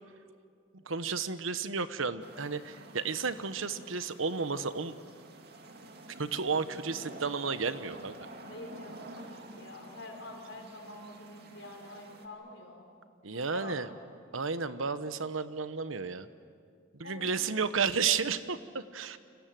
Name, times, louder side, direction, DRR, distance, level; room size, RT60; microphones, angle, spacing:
voice 1, 0.8-4.9 6.2-8.2 13.2-13.9 14.3-16.3 17.0-19.2, right 5 dB, 90° right, 12 dB, 1.2 m, -32 dB
sound 1, 2.2-12.3, right 2 dB, 55° right, 2.4 m, -50 dB
voice 2, 8.4-12.9 13.3-13.8 17.0-17.3, left 2 dB, 70° left, 2 dB, 5.1 m, -47 dB
30.0 x 26.0 x 7.8 m, 2.2 s
head